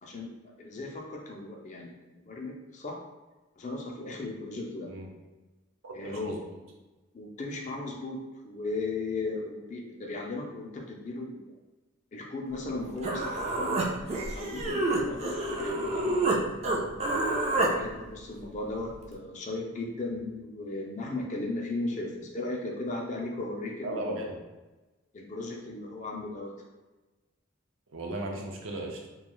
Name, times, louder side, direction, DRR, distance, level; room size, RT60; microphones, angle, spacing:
voice 1, 0.6-3.0 3.6-4.9 5.9-6.4 7.1-8.2 8.4-11.6 12.1-14.1 14.4-16.4 17.7-24.3 25.1-26.5, left 2 dB, 35° left, 0 dB, 0.4 m, -36 dB
voice 2, 5.8-6.6 23.8-24.4 27.9-29.0, right 1 dB, 85° right, 0 dB, 0.5 m, -36 dB
Human voice, 12.7-12.8 13.0-16.4 16.6-17.7, right 2 dB, 30° right, 0.3 m, -28 dB
2.3 x 2.2 x 3.0 m, 1.2 s
head